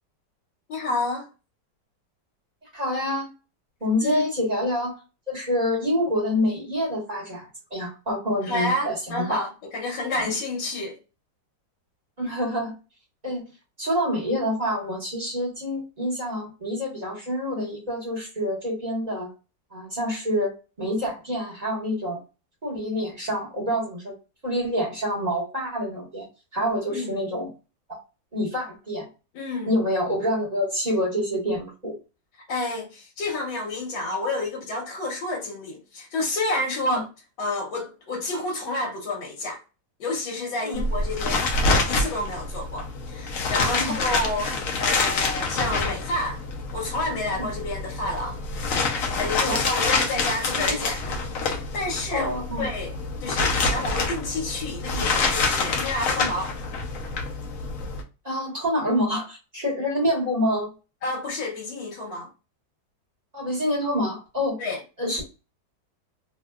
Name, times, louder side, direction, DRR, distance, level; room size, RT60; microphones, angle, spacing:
voice 1, 0.7-1.3 4.0-4.2 8.4-11.0 26.9-27.2 29.3-29.7 32.5-37.1 37.4-39.6 40.0-46.4 46.7-48.4 49.1-52.3 52.6-52.9 53.2-56.5 61.0-62.3 64.6-64.8, left 2 dB, 90° left, 1.5 m, -29 dB
voice 2, 2.7-3.3 3.8-5.0 5.3-9.4 12.2-12.7 13.2-13.4 13.8-19.3 19.7-20.5 20.8-22.2 22.6-24.1 24.4-26.3 26.5-27.5 28.3-29.1 29.6-31.9 36.8-37.0 40.6-40.8 43.8-43.9 47.4-47.5 49.4-49.6 50.7-50.8 52.1-52.7 56.2-56.3 58.2-60.7 63.3-64.6 65.0-65.2, equal, 25° right, 1.4 m, -27 dB
sound 1, 40.7-58.0, left 3 dB, 65° left, 0.9 m, -27 dB
3.3 x 2.7 x 2.3 m
omnidirectional pair, 2.0 m